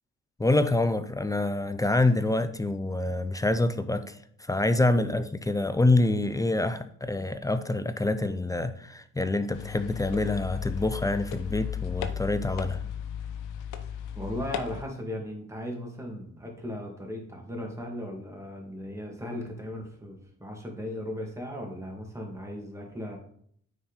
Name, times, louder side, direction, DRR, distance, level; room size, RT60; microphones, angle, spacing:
voice 1, 0.4-12.8, left 2 dB, 10° left, 11 dB, 0.5 m, -26 dB
sound 1, 9.5-14.8, left 8 dB, 90° left, 0.8 m, -35 dB
voice 2, 14.1-23.2, left 1 dB, 10° right, 1 dB, 2.2 m, -37 dB
9.4 x 4.2 x 4.1 m, 0.64 s
cardioid pair, 90°, 30 cm